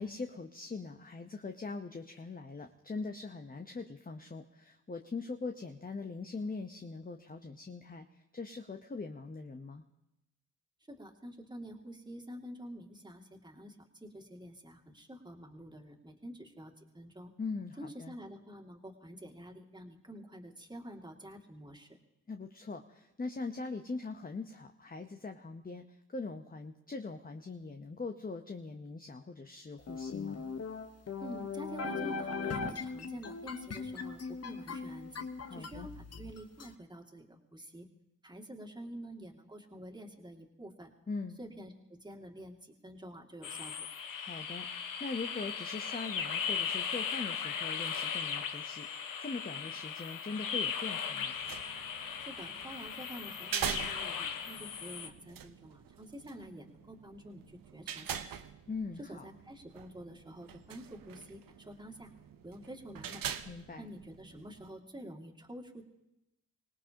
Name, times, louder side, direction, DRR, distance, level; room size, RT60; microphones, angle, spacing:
voice 1, 0.0-9.8 17.4-18.1 22.3-25.8 26.1-30.4 35.4-35.9 41.1-41.4 44.2-51.4 58.7-59.2 63.4-63.9, left 3 dB, 25° left, 5 dB, 0.9 m, -42 dB
voice 2, 10.9-13.8 14.0-17.3 17.8-21.9 31.2-37.9 38.2-40.9 41.4-43.9 52.2-58.4 59.0-62.1 62.4-63.2 63.8-65.8, equal, 10° right, 0 dB, 2.3 m, -48 dB
sound 1, 29.9-36.7, left 5 dB, 45° left, 1.2 m, -39 dB
sound 2, 43.4-55.1, left 7 dB, 65° left, 1.0 m, -37 dB
sound 3, 51.2-64.7, right 9 dB, 70° right, 0.8 m, -44 dB
25.0 x 18.0 x 2.9 m, 0.92 s
supercardioid pair, 45°, 36 cm